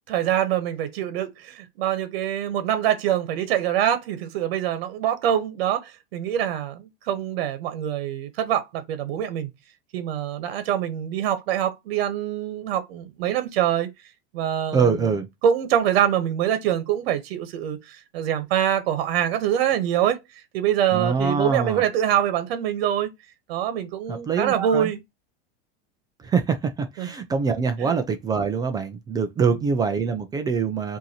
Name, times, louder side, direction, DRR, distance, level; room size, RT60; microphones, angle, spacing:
voice 1, 0.1-9.5 9.9-13.9 14.3-15.1 15.4-20.2 20.5-23.1 23.5-25.0 27.0-27.1 27.8-27.9, right 10 dB, 75° right, 1.1 m, -24 dB
voice 2, 14.7-15.3 20.9-21.8 24.1-24.9 26.2-31.0, right 5 dB, 15° right, 0.3 m, -24 dB
5.4 x 2.7 x 2.8 m
supercardioid pair, 160°, 30 cm